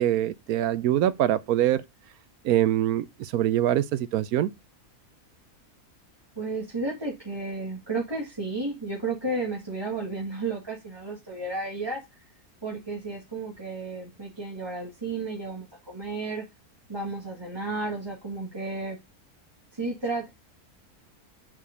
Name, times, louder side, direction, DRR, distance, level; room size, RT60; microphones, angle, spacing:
voice 1, 0.0-1.8 2.4-4.5, right 12 dB, 75° right, 1.1 m, -24 dB
voice 2, 6.4-12.0 12.6-16.5 16.9-19.0 19.7-20.3, right 3 dB, 15° right, 1.9 m, -32 dB
5.8 x 5.0 x 5.2 m
omnidirectional pair, 1.6 m